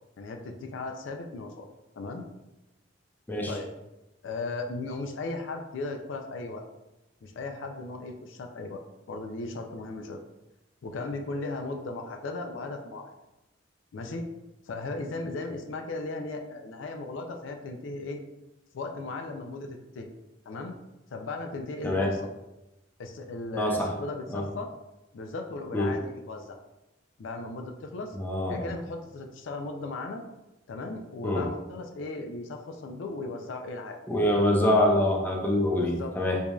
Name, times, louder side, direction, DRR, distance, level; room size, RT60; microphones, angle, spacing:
voice 1, 0.2-1.7 2.0-2.2 3.5-3.7 4.2-6.7 7.2-8.8 9.1-10.2 10.8-13.1 13.9-14.3 14.7-18.2 18.7-20.1 20.5-20.7 21.1-22.3 23.0-24.7 25.1-26.6 27.2-28.2 28.5-30.2 30.7-34.4 35.8-36.4, left 3 dB, 75° left, 4 dB, 0.4 m, -36 dB
voice 2, 21.8-22.1 23.6-23.9 24.3-24.4 25.7-25.9 28.1-28.7 31.2-31.4 34.1-36.4, left 1 dB, 10° left, -1 dB, 0.5 m, -25 dB
4.7 x 2.7 x 2.3 m, 0.97 s
head